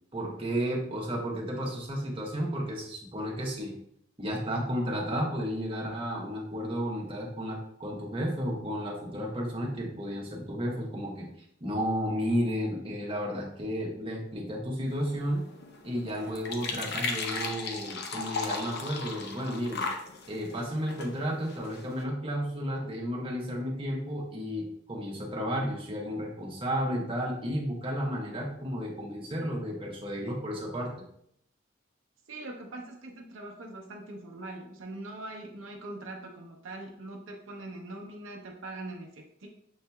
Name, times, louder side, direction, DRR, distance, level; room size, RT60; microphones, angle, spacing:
voice 1, 0.1-3.7 4.2-11.3 11.6-15.4 15.8-19.9 20.3-30.9, equal, 30° right, -2 dB, 0.9 m, -32 dB
sound 1, 14.9-22.0, left 4 dB, 55° left, 0.6 m, -37 dB
voice 2, 32.3-39.5, right 2 dB, 85° right, 1 dB, 0.6 m, -42 dB
6.3 x 2.8 x 2.3 m, 0.71 s
head